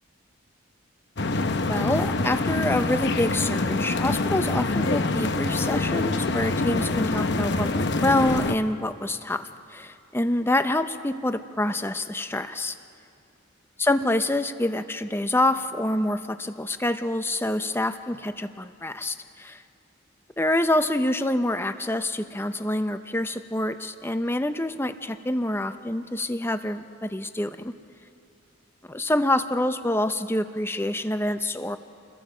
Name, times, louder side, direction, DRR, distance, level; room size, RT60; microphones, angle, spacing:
sound 1, 1.2-8.6, left 2 dB, 55° left, 0.9 m, -25 dB
voice 1, 1.7-12.8 13.8-19.6 20.4-27.7 28.9-31.8, left 1 dB, 10° left, 10 dB, 0.6 m, -26 dB
30.0 x 22.0 x 5.0 m, 2.6 s
head